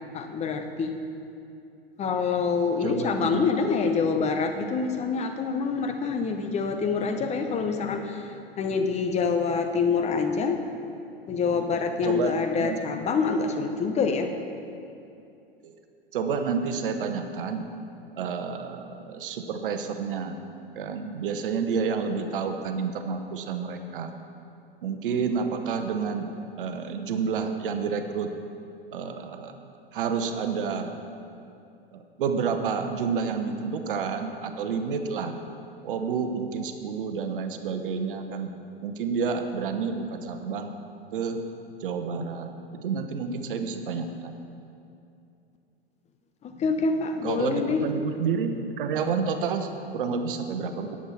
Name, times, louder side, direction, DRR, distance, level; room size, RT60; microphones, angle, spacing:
voice 1, 0.1-0.9 2.0-10.6 11.3-14.3 46.4-47.8, left 5 dB, 20° left, 5 dB, 0.8 m, -26 dB
voice 2, 2.8-3.5 12.0-12.8 15.6-15.7 16.1-17.6 18.2-20.4 20.8-24.1 24.8-26.3 26.6-28.3 28.9-29.5 29.9-30.9 31.9-35.3 35.8-38.5 38.8-40.7 41.1-41.4 41.8-42.5 42.8-44.3 47.2-51.0, right 5 dB, 60° right, 7 dB, 1.0 m, -29 dB
19.0 x 7.5 x 4.2 m, 2.7 s
figure-of-eight pair, 90°, 31 cm